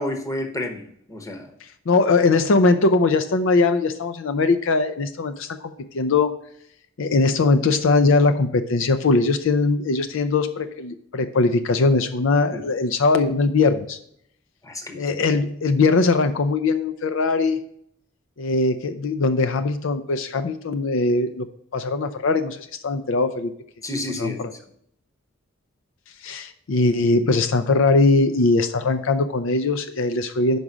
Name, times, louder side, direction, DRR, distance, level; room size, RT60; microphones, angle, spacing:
voice 1, 0.0-1.5 12.5-12.6 14.6-15.2 23.8-24.4, left 1 dB, 15° left, 5 dB, 0.9 m, -30 dB
voice 2, 1.9-6.3 7.0-14.0 14.9-17.6 18.4-21.5 21.7-22.6 22.8-23.5 24.2-24.5 26.2-30.6, left 3 dB, 65° left, 9 dB, 0.5 m, -20 dB
5.4 x 4.9 x 5.9 m, 0.69 s
head